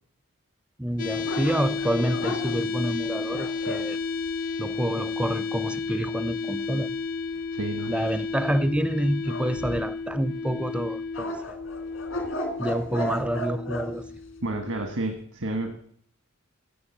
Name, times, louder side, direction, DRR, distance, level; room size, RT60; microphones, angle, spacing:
voice 1, 0.8-4.0 4.6-6.9 7.9-11.6 12.6-14.1, equal, 5° right, 0.4 m, -28 dB
sound 1, 1.0-14.9, left 4 dB, 40° left, 0.6 m, -32 dB
sound 2, 1.2-3.9 9.2-10.1 11.1-13.9, equal, 80° left, 2.1 m, -34 dB
voice 2, 7.5-7.9 14.4-15.8, right 2 dB, 80° right, 1.5 m, -30 dB
16.0 x 7.4 x 7.2 m
head